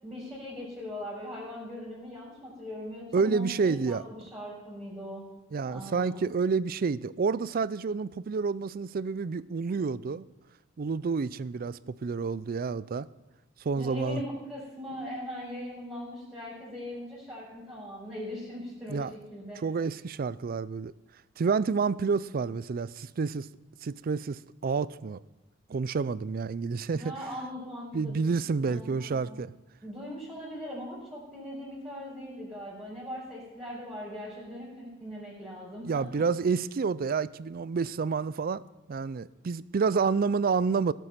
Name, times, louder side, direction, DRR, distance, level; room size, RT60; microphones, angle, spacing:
voice 1, 0.0-5.2 5.6-6.2 13.7-19.6 26.9-28.2 28.6-29.4 29.8-36.1, equal, 10° right, -9 dB, 4.8 m, -40 dB
voice 2, 3.1-4.0 5.5-10.2 10.8-13.1 13.6-14.2 18.9-19.1 19.6-20.9 21.4-23.5 23.8-25.2 25.7-27.1 27.9-29.5 35.8-38.6 38.9-40.9, right 5 dB, 45° right, 19 dB, 0.4 m, -29 dB
17.5 x 8.3 x 5.9 m, 1.1 s
head